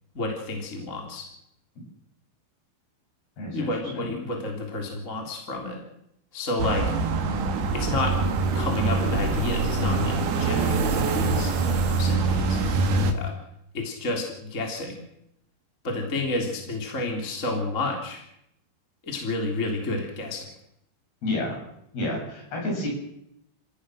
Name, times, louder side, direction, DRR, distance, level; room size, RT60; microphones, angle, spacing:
voice 1, 0.1-1.3 3.5-5.8 6.3-6.9 7.7-8.2 8.5-13.3 13.7-15.0 15.8-18.2 19.0-20.5, left 2 dB, 20° left, 1 dB, 3.2 m, -30 dB
voice 2, 3.4-3.7 3.9-4.1 21.2-21.6 21.9-22.9, left 2 dB, 50° left, -1 dB, 9.9 m, -29 dB
sound 1, 6.6-13.1, right 3 dB, 60° right, 3.4 m, -24 dB
29.0 x 17.0 x 6.4 m, 0.78 s
omnidirectional pair, 5.5 m